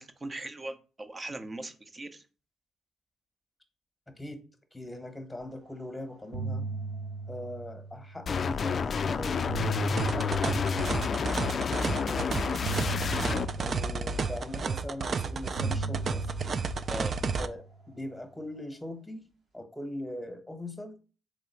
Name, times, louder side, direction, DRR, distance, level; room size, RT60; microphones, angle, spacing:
voice 1, 0.0-2.2 16.9-17.1, right 2 dB, 25° right, 8 dB, 0.8 m, -39 dB
voice 2, 4.7-6.7 7.3-13.0 13.6-16.3 17.4-19.3 19.5-21.0, left 1 dB, 5° left, 6 dB, 1.2 m, -41 dB
sound 1, 5.7-5.9 6.2-8.5 9.2-11.6 12.6-15.1 15.5-18.1, right 3 dB, 90° right, 1.3 m, -38 dB
sound 2, 8.3-13.4, left 5 dB, 45° left, 0.3 m, -29 dB
sound 3, 10.0-17.5, right 5 dB, 50° right, 0.4 m, -32 dB
3.6 x 3.2 x 4.5 m, 0.34 s
supercardioid pair, 60°, 0 cm